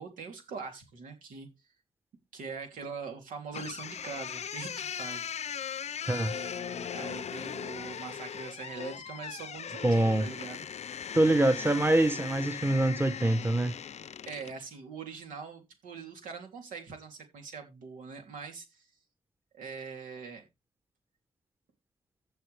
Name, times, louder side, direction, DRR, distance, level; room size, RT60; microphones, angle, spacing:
voice 1, 0.0-1.5 2.3-5.6 6.1-10.6 14.3-18.9 19.5-20.4, right 5 dB, 90° right, 3.2 m, -43 dB
sound 1, 3.5-14.6, left 8 dB, 55° left, 0.6 m, -39 dB
voice 2, 9.8-10.2 11.1-13.8, right 1 dB, 15° right, 1.1 m, -25 dB
15.0 x 7.0 x 3.4 m
cardioid pair, 75°, 13 cm